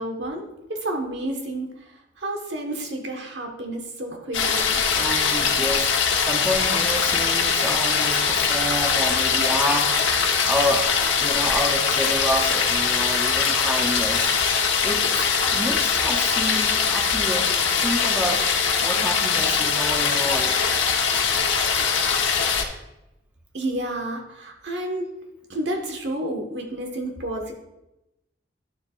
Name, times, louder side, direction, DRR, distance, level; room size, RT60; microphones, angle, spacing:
voice 1, 0.0-4.8 23.5-25.1 25.5-27.5, right 1 dB, 65° right, 1 dB, 1.5 m, -30 dB
sound 1, 4.3-22.6, left 6 dB, 80° left, 1.1 m, -22 dB
voice 2, 4.9-10.1 10.5-10.9 11.2-14.3 14.8-18.4 18.8-20.6, equal, 5° right, 1 dB, 0.7 m, -29 dB
11.5 x 7.3 x 2.5 m, 0.93 s
head